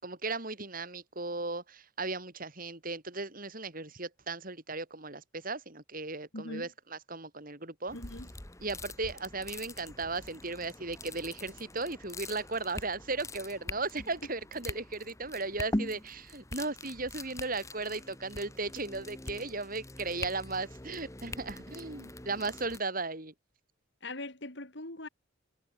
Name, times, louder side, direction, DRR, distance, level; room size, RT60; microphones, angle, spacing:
voice 1, 0.0-8.0 8.6-23.3, right 3 dB, 45° right, 4.7 m, -36 dB
voice 2, 6.3-6.7 7.9-8.3 24.0-25.1, left 2 dB, 60° left, 3.9 m, -41 dB
sound 1, 7.9-22.8, left 1 dB, 15° left, 1.7 m, -43 dB
head